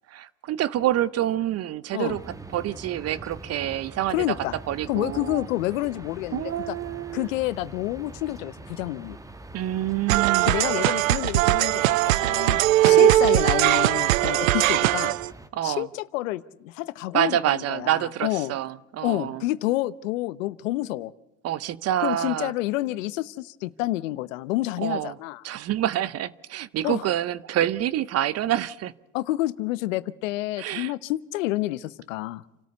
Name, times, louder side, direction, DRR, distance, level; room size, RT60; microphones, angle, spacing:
voice 1, 0.1-4.3 4.7-5.5 6.3-7.3 9.5-10.7 12.8-13.1 15.5-15.9 17.1-19.4 21.4-22.5 24.8-25.2 25.4-28.9 30.6-30.9, right 12 dB, 40° right, 0.9 m, -27 dB
sound 1, 2.1-15.5, right 2 dB, 10° right, 1.2 m, -44 dB
voice 2, 4.1-4.6 4.9-6.8 7.1-9.2 10.5-15.2 15.6-18.5 19.0-21.1 22.0-25.4 26.8-27.1 29.1-32.4, left 17 dB, 75° left, 1.0 m, -29 dB
sound 2, 10.1-15.3, right 16 dB, 85° right, 0.7 m, -20 dB
28.5 x 13.5 x 8.1 m
hypercardioid pair, 100°, 39 cm